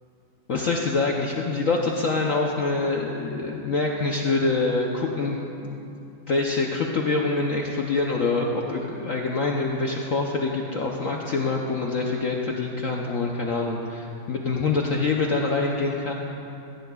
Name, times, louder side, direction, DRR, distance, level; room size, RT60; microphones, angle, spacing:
voice 1, 0.5-5.7 6.3-16.1, left 3 dB, 65° left, 0 dB, 0.8 m, -25 dB
17.0 x 14.5 x 2.3 m, 2.8 s
omnidirectional pair, 2.2 m